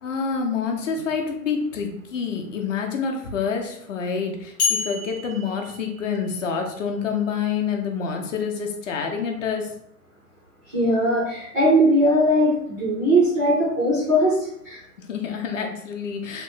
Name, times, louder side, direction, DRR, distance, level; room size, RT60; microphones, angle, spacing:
voice 1, 0.0-9.7 15.0-16.4, left 6 dB, 55° left, 3 dB, 0.7 m, -27 dB
sound 1, 4.6-6.7, left 6 dB, 20° left, 0.7 m, -29 dB
voice 2, 10.7-14.8, equal, 15° right, -9 dB, 0.3 m, -20 dB
2.9 x 2.0 x 3.2 m, 0.72 s
figure-of-eight pair, 120°, 45 cm